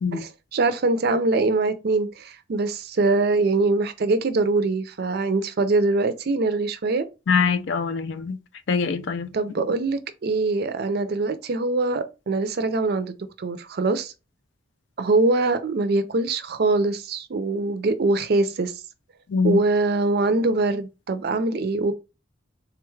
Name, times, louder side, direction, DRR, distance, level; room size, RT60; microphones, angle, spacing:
voice 1, 0.1-7.1 9.3-14.1 15.0-18.8 19.4-21.9, right 3 dB, 55° right, 0.4 m, -23 dB
voice 2, 7.3-8.4 8.7-9.3 19.3-19.6, left 5 dB, 65° left, 0.4 m, -23 dB
3.7 x 2.3 x 3.1 m
head